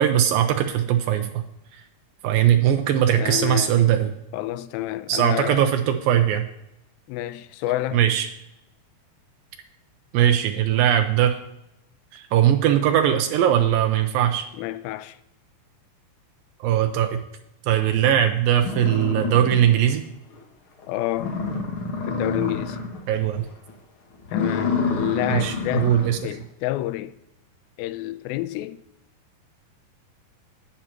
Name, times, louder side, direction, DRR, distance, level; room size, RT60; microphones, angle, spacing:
voice 1, 0.0-1.4 1.7-1.8 2.2-4.1 5.1-6.5 7.9-8.3 10.1-11.4 12.1-14.5 16.6-17.2 17.7-20.0 23.1-23.5 25.3-26.2, right 10 dB, 85° right, 2.3 m, -20 dB
voice 2, 3.2-3.7 4.3-5.7 7.1-8.0 14.6-15.2 20.9-21.4 22.1-22.8 24.3-25.9 26.2-27.2 27.8-28.8, left 15 dB, 90° left, 2.4 m, -29 dB
sound 1, 18.1-18.2 18.6-20.0 20.3-20.4 20.8-20.9 21.1-23.1 23.4-23.7 24.2-26.2, left 4 dB, 55° left, 1.5 m, -28 dB
11.5 x 8.7 x 2.9 m
omnidirectional pair, 4.2 m